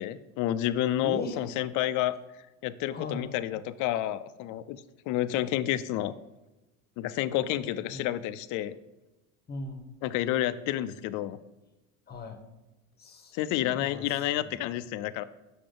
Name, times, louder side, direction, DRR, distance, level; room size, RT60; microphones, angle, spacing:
voice 1, 0.0-2.2 2.6-4.8 5.1-6.1 7.0-8.8 10.0-11.4 13.3-15.2, left 13 dB, 45° left, 13 dB, 0.4 m, -30 dB
voice 2, 1.0-1.4 2.9-3.3 7.9-8.1 9.5-9.8 12.1-12.4 13.0-14.0 14.4-14.7, left 2 dB, 20° left, 5 dB, 1.0 m, -38 dB
6.1 x 5.0 x 3.8 m, 1.0 s
hypercardioid pair, 90°, 43 cm